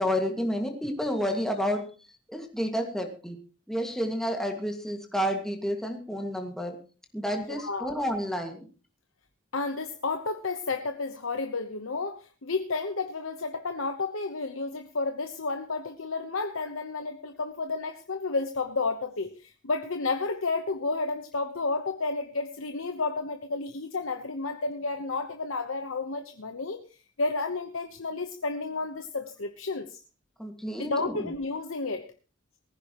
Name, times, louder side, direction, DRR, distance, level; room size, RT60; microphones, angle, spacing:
voice 1, 0.0-1.9 2.3-3.4 3.7-6.8 7.1-8.7 30.4-31.3, equal, ahead, 3 dB, 2.0 m, -30 dB
voice 2, 7.5-7.9 9.5-30.0 30.8-32.1, left 3 dB, 75° left, 6 dB, 1.0 m, -31 dB
19.5 x 15.0 x 3.0 m, 0.37 s
head